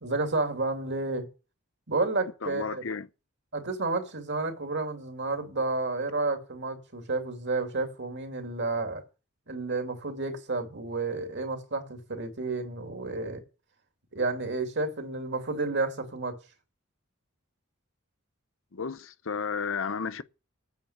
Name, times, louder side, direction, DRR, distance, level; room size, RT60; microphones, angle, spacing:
voice 1, 0.0-1.3 1.9-2.8 3.5-9.0 9.5-13.4 14.1-16.4, right 3 dB, 60° right, 2.6 m, -31 dB
voice 2, 2.4-3.1 18.7-20.2, left 5 dB, 70° left, 0.7 m, -33 dB
9.5 x 7.1 x 8.0 m
head